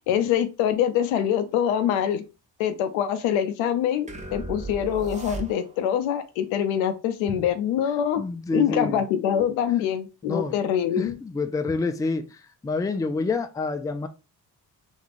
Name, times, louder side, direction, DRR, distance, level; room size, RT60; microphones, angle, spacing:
voice 1, 0.1-2.2 2.6-8.2 8.5-11.1, left 9 dB, 80° left, 0.6 m, -24 dB
sound 1, 4.1-6.0, right 3 dB, 15° right, 0.9 m, -36 dB
voice 2, 8.2-9.0 10.2-10.5 11.0-12.2 12.6-14.1, left 3 dB, 10° left, 0.4 m, -27 dB
3.5 x 2.8 x 2.5 m
hypercardioid pair, 50°, 46 cm